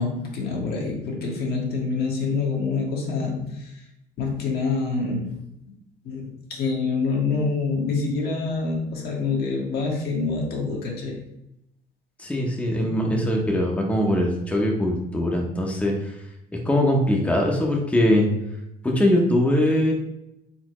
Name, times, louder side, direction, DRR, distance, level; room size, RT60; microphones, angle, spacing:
voice 1, 0.0-3.8 4.2-5.4 6.0-11.1 12.7-12.8, left 4 dB, 65° left, -1 dB, 1.4 m, -26 dB
voice 2, 12.2-16.1 16.6-18.3 18.8-19.9, left 1 dB, 10° left, -1 dB, 0.8 m, -21 dB
4.2 x 3.9 x 3.0 m, 0.86 s
cardioid pair, 110°, 17 cm